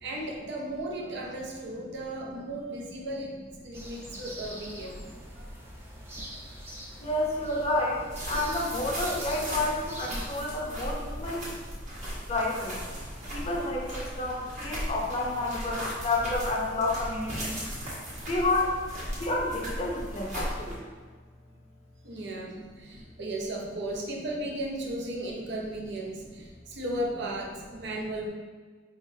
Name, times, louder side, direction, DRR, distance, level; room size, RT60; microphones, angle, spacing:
voice 1, 0.0-3.4 3.6-5.4 11.4-11.5 12.9-13.1 22.0-28.3, right 1 dB, 65° right, -1 dB, 0.6 m, -36 dB
sound 1, 3.7-10.4, equal, 15° right, 0.6 m, -44 dB
voice 2, 7.0-11.5 12.3-12.8 13.3-17.6 18.3-18.8 19.1-20.8 22.9-23.0, left 2 dB, 35° left, -1 dB, 0.6 m, -30 dB
sound 2, 8.1-20.8, equal, 40° right, 1.2 m, -37 dB
4.4 x 3.6 x 2.7 m, 1.5 s
head